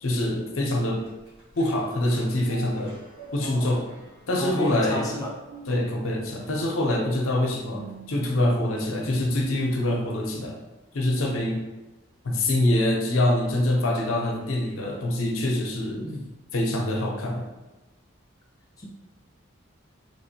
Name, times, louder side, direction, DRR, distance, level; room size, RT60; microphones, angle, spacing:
voice 1, 0.0-1.0 1.6-3.0 3.3-3.8 4.3-5.1 5.7-7.8 8.1-10.6 10.9-11.6 12.2-16.0 16.5-17.5, left 1 dB, 85° left, 0 dB, 0.6 m, -25 dB
sound 1, 1.1-9.6 10.0-10.1, right 2 dB, 70° right, 1.3 m, -45 dB
voice 2, 3.4-3.7 4.3-5.4 16.0-16.3 18.8-18.9, left 1 dB, 15° left, -3 dB, 0.4 m, -32 dB
3.3 x 2.5 x 2.7 m, 1.1 s
head